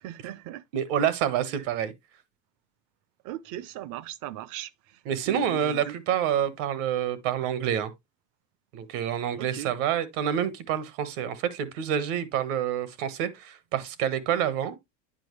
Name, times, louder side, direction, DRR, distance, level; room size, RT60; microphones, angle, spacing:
voice 1, 0.0-0.6 1.5-1.6 3.2-5.0 5.3-6.0 9.4-9.7, right 13 dB, 50° right, 0.6 m, -38 dB
voice 2, 0.7-1.9 5.1-7.9 8.7-14.8, right 9 dB, 75° right, 1.3 m, -28 dB
9.1 x 5.0 x 3.1 m
cardioid pair, 140°, 37 cm